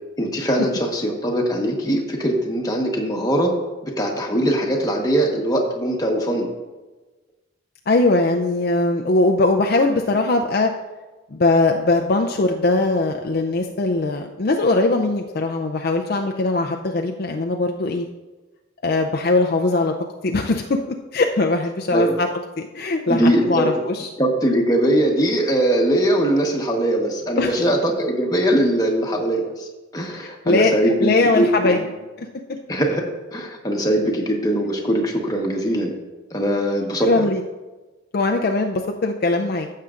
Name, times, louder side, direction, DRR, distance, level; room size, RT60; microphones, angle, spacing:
voice 1, 0.2-3.5 3.8-6.5 21.9-22.2 23.1-23.7 24.2-29.7 29.9-31.9 32.7-33.0 33.3-36.0 36.3-37.3, right 1 dB, 20° left, 0 dB, 1.1 m, -21 dB
voice 2, 7.9-10.7 11.3-18.1 18.8-19.9 20.2-20.8 21.1-22.3 22.6-24.1 27.4-27.6 30.5-31.8 32.2-32.3 37.0-37.4 38.1-39.7, left 2 dB, 50° left, 2 dB, 0.4 m, -20 dB
15.0 x 6.6 x 2.5 m, 1.2 s
head